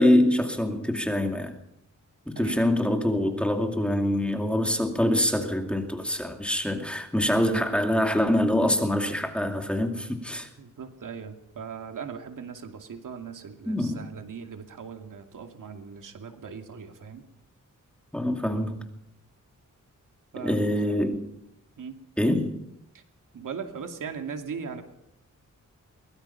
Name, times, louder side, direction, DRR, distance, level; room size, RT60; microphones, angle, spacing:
voice 1, 0.0-1.6 2.3-10.5 13.7-14.0 18.1-18.8 20.4-21.2 22.2-22.6, left 1 dB, 5° left, 4 dB, 2.4 m, -25 dB
voice 2, 10.6-17.2 20.3-20.6 20.9-21.1 21.8-22.0 22.9-23.0 23.3-24.8, right 6 dB, 80° right, 5 dB, 2.5 m, -39 dB
23.0 x 21.5 x 5.7 m, 0.81 s
wide cardioid pair, 170°, 31 cm